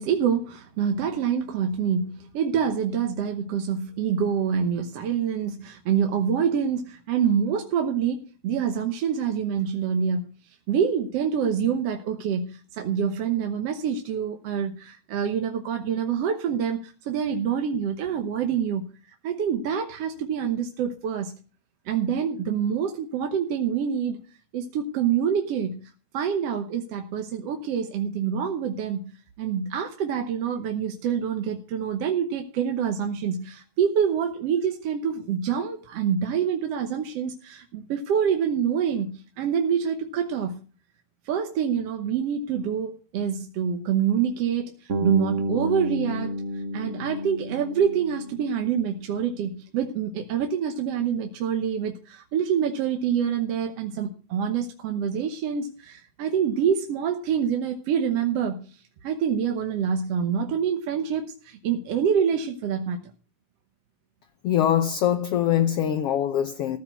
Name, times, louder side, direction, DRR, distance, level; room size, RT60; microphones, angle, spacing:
voice 1, 0.0-8.2 8.4-10.2 10.7-18.8 19.2-21.4 21.9-24.2 24.5-29.0 29.4-40.6 41.3-63.1, right 7 dB, 65° right, 1.9 m, -26 dB
Bass guitar, 44.9-49.0, equal, 40° right, 1.2 m, -31 dB
voice 2, 64.4-66.8, left 10 dB, 70° left, 1.6 m, -23 dB
15.0 x 5.9 x 8.1 m
omnidirectional pair, 3.4 m